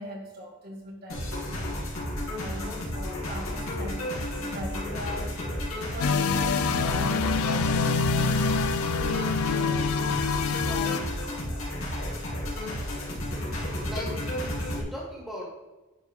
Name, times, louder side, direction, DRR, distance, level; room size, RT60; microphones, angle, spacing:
voice 1, 0.0-1.8 2.4-5.4 5.9-10.0 10.6-11.7, equal, 45° right, -2 dB, 1.7 m, -41 dB
sound 1, 1.1-14.8, left 1 dB, 70° left, 2.7 m, -32 dB
sound 2, 6.0-11.0, left 5 dB, 85° left, 0.5 m, -26 dB
voice 2, 12.7-13.5 13.8-15.5, left 1 dB, ahead, -5 dB, 2.1 m, -40 dB
11.0 x 4.7 x 3.6 m, 1.1 s
head